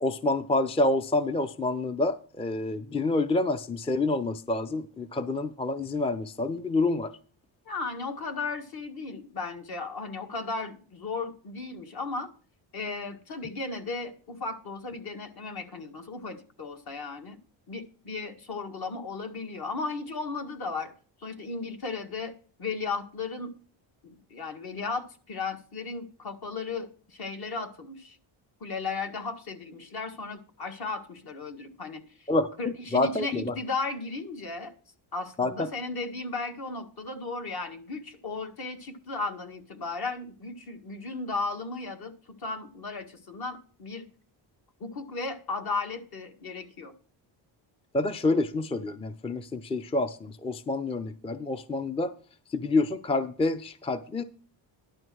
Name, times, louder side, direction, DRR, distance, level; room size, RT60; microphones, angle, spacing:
voice 1, 0.0-7.1 32.3-33.5 35.4-35.7 47.9-52.1 52.5-54.2, left 2 dB, 15° left, 11 dB, 0.5 m, -28 dB
voice 2, 7.7-12.3 12.7-17.4 17.7-20.9 21.2-22.3 22.6-23.5 24.0-28.2 28.6-32.3 32.6-34.7 35.1-42.1 42.4-44.1 44.8-46.9, left 3 dB, 55° left, 5 dB, 2.0 m, -35 dB
11.5 x 5.2 x 6.2 m, 0.42 s
cardioid pair, 115°, 46 cm